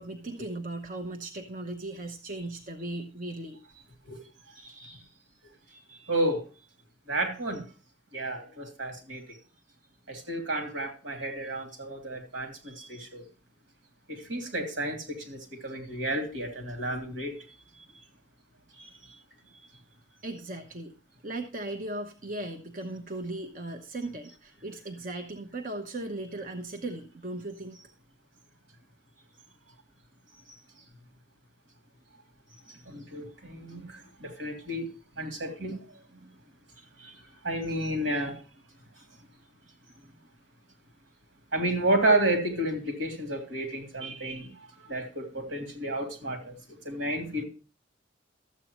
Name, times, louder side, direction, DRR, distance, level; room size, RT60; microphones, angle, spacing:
voice 1, 0.0-3.6 20.2-20.9 21.2-27.8, right 2 dB, 45° right, 0.9 m, -37 dB
voice 2, 4.5-5.0 5.9-6.4 7.1-7.6 8.1-9.2 10.1-13.2 14.1-17.3 18.8-18.9 32.7-34.9 35.2-36.0 37.0-37.2 37.4-38.4 41.5-44.5 44.8-46.5 46.8-47.4, right 1 dB, 85° right, 3.0 m, -31 dB
13.0 x 8.5 x 3.0 m
head